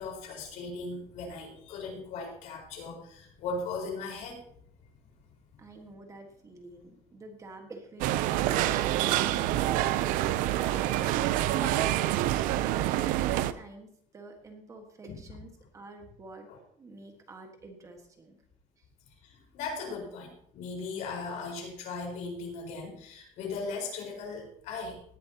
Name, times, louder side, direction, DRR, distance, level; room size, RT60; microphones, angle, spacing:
voice 1, 0.0-4.4 11.5-11.9 15.1-15.2 16.5-16.6 19.2-25.0, left 3 dB, 65° left, 0 dB, 4.6 m, -38 dB
voice 2, 5.6-8.7 9.1-12.2 12.9-16.5 16.8-18.4 18.8-18.9, right 2 dB, 25° right, 4 dB, 1.5 m, -48 dB
sound 1, 8.0-13.5, right 14 dB, 80° right, 0.6 m, -27 dB
18.5 x 11.0 x 2.9 m, 0.66 s
cardioid pair, 165°, 14 cm